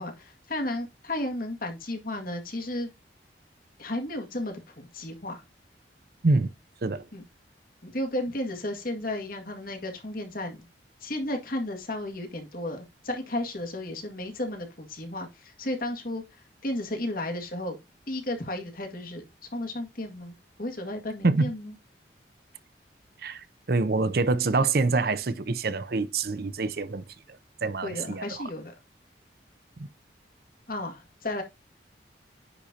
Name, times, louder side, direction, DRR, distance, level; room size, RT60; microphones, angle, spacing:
voice 1, 0.0-2.9 3.8-5.4 7.1-7.2 7.8-10.7 11.0-17.8 18.1-19.2 19.5-21.7 27.8-28.7 30.7-31.4, left 1 dB, 50° left, 2.0 m, -33 dB
voice 2, 23.2-27.0 27.6-28.4 29.8-29.9, right 3 dB, 55° right, 0.6 m, -26 dB
9.8 x 4.1 x 2.8 m
head